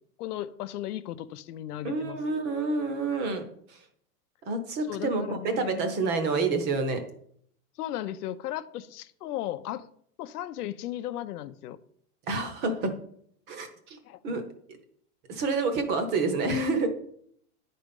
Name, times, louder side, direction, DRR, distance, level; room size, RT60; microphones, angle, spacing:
voice 1, 0.2-2.2 4.9-5.9 7.8-9.9 10.2-11.8 14.1-14.4, left 13 dB, 80° left, 0.7 m, -36 dB
voice 2, 1.8-3.4 4.5-7.0 12.3-12.9 13.5-14.0 14.2-14.4 15.3-16.9, right 3 dB, 20° right, 0.9 m, -28 dB
10.0 x 4.3 x 5.2 m
supercardioid pair, 165°, 46 cm